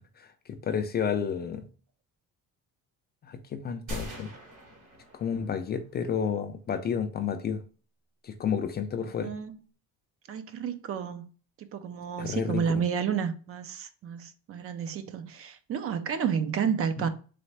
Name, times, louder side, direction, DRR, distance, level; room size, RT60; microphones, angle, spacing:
voice 1, 0.0-1.6 3.2-4.3 5.1-7.6 8.2-9.3 12.2-12.6, left 7 dB, 30° left, 0.4 m, -31 dB
sound 1, 3.9-5.8, left 1 dB, 65° right, 2.4 m, -41 dB
voice 2, 9.2-9.6 10.3-11.3 11.6-17.1, right 7 dB, 45° right, 0.5 m, -31 dB
4.1 x 3.2 x 3.2 m
cardioid pair, 155°, 33 cm